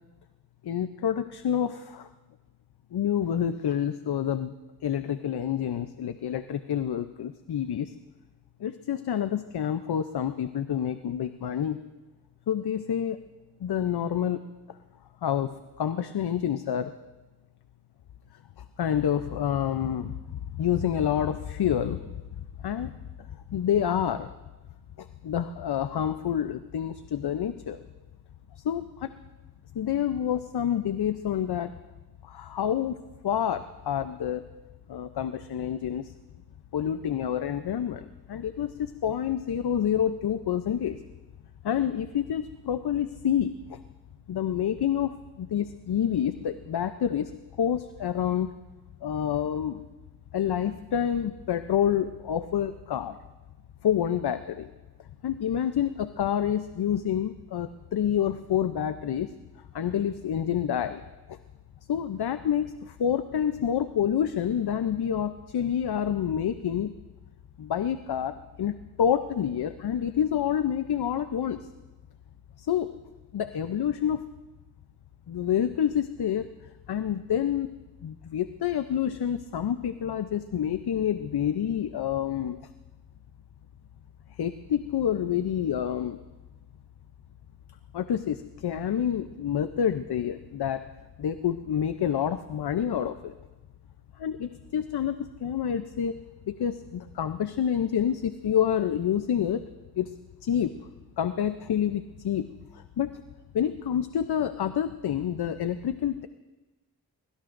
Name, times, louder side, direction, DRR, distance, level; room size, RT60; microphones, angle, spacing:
voice 1, 0.6-2.1 2.9-4.5 4.8-7.9 8.6-11.8 12.5-13.2 13.6-14.4 14.7-14.8 15.2-15.5 15.8-16.9 18.6-22.1 22.6-22.9 23.5-24.3 25.0-27.8 28.5-29.1 29.7-31.7 32.2-34.5 34.9-36.1 36.7-41.0 41.6-43.8 44.3-47.3 47.6-48.5 49.0-49.8 50.3-53.2 53.8-54.7 55.2-59.3 59.7-61.0 61.3-61.4 61.9-66.9 67.6-71.7 72.6-72.9 73.3-74.3 75.3-76.5 76.9-77.7 78.0-82.6 84.3-86.2 87.9-90.9 91.2-93.3 94.2-96.2 96.5-99.6 100.0-100.1 100.4-100.9 101.2-103.2 103.5-106.3, left 9 dB, 75° left, 10 dB, 0.7 m, -28 dB
24.0 x 22.5 x 2.6 m, 1.1 s
cardioid pair, 65°, 39 cm